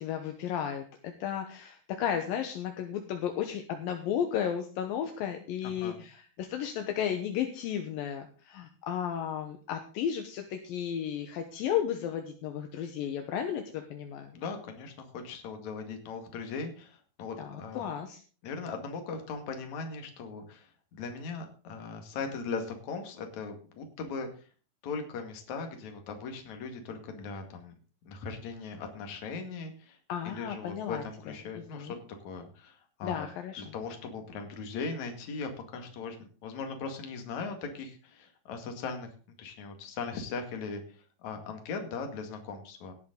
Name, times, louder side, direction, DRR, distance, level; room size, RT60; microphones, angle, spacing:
voice 1, 0.0-14.3 17.4-18.2 30.1-31.0 31.6-32.0 33.0-33.7, left 9 dB, 75° left, 5 dB, 2.8 m, -34 dB
voice 2, 14.3-17.8 18.4-24.3 24.8-27.7 28.0-30.0 30.2-33.3 33.6-39.1 39.4-40.8 41.2-42.9, left 4 dB, 55° left, 5 dB, 3.2 m, -39 dB
17.5 x 10.5 x 3.9 m, 0.38 s
omnidirectional pair, 4.2 m